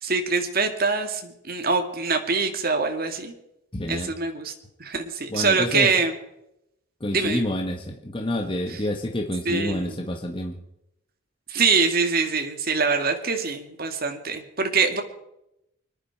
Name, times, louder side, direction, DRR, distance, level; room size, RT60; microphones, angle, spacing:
voice 1, 0.0-3.3 3.9-4.5 4.8-6.1 7.1-7.4 8.7-8.8 9.5-9.9 11.5-15.0, right 4 dB, 45° right, 5 dB, 2.0 m, -24 dB
voice 2, 3.7-4.1 5.3-5.9 7.0-10.6, left 1 dB, 25° left, 2 dB, 1.4 m, -28 dB
25.0 x 11.0 x 4.6 m, 0.83 s
head